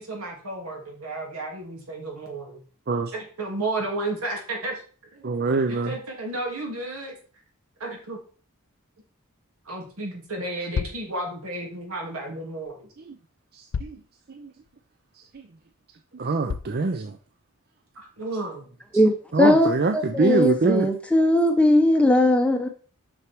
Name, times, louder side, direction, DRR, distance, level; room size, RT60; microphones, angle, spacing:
voice 1, 0.0-2.6 3.1-4.8 5.1-5.3 5.7-7.1 7.8-8.2 9.6-12.9 17.9-19.0, right 2 dB, 75° right, 0 dB, 3.0 m, -33 dB
voice 2, 5.2-5.9 13.8-13.9 14.4-14.5 16.2-17.1 19.3-20.9, right 3 dB, 45° right, 7 dB, 0.5 m, -23 dB
sound 1, 10.3-10.4 10.7-11.1 12.7-12.8 13.7-14.1 14.7-14.8 15.3-15.4 16.5-16.8, left 6 dB, 60° left, 0.4 m, -31 dB
voice 3, 18.9-22.7, left 1 dB, 5° left, 4 dB, 0.7 m, -19 dB
6.3 x 6.1 x 4.6 m, 0.40 s
head